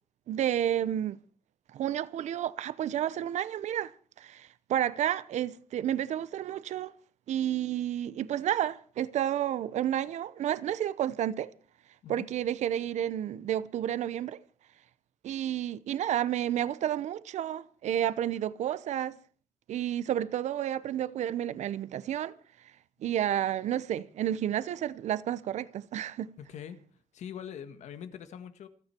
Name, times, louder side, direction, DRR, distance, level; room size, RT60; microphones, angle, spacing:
voice 1, 0.3-1.2 1.7-6.9 7.3-11.5 12.1-14.4 15.2-19.2 19.7-22.3 23.0-26.3, right 11 dB, 85° right, 0.9 m, -31 dB
voice 2, 26.4-26.8 27.1-28.7, left 8 dB, 85° left, 1.8 m, -43 dB
28.0 x 9.9 x 4.5 m
wide cardioid pair, 180°, 12 cm